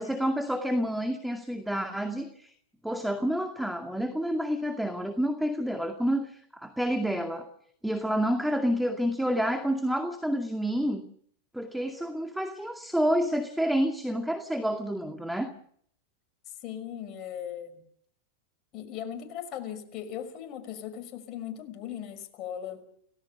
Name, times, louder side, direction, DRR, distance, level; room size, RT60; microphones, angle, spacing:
voice 1, 0.0-2.5 2.8-7.5 7.8-11.0 11.5-15.5, equal, ahead, 6 dB, 2.2 m, -29 dB
voice 2, 16.6-17.8 18.7-22.8, left 9 dB, 40° left, 8 dB, 5.7 m, -38 dB
29.5 x 19.0 x 7.0 m, 0.65 s
hypercardioid pair, 100°, 0 cm